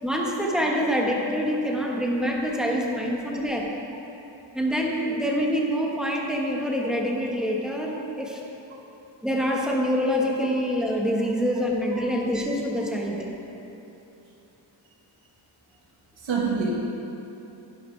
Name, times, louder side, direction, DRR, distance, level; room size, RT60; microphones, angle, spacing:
voice 1, 0.0-3.7 4.5-8.4 9.2-13.3, equal, ahead, -2 dB, 1.4 m, -26 dB
voice 2, 16.2-16.7, right 5 dB, 85° right, -2 dB, 1.7 m, -26 dB
11.0 x 11.0 x 3.4 m, 3.0 s
wide cardioid pair, 120°, 45 cm